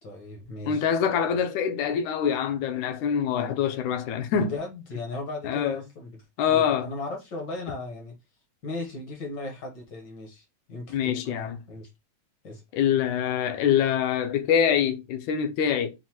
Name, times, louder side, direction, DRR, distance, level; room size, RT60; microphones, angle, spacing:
voice 1, 0.0-0.8 3.3-3.5 4.5-6.1 6.5-8.1 8.6-11.9 12.4-12.6, left 2 dB, 60° left, 1.2 m, -37 dB
voice 2, 0.7-4.6 5.4-5.8 6.4-6.9 10.9-11.6 12.7-16.0, left 8 dB, 80° left, 2.1 m, -25 dB
5.6 x 2.6 x 2.9 m
omnidirectional pair, 3.5 m